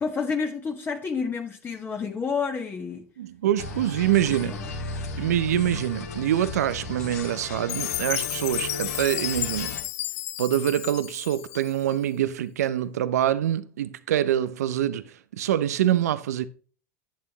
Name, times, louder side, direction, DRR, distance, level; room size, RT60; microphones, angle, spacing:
voice 1, 0.0-3.1 4.4-4.6, left 5 dB, 25° left, 1.5 m, -29 dB
voice 2, 3.2-4.5 5.2-9.8 10.4-16.5, right 11 dB, 80° right, 0.7 m, -25 dB
sound 1, 3.6-9.8, left 3 dB, 85° left, 3.0 m, -35 dB
Chime, 7.7-11.9, left 16 dB, 70° left, 0.7 m, -32 dB
11.5 x 8.2 x 3.0 m
hypercardioid pair, 95°, 8 cm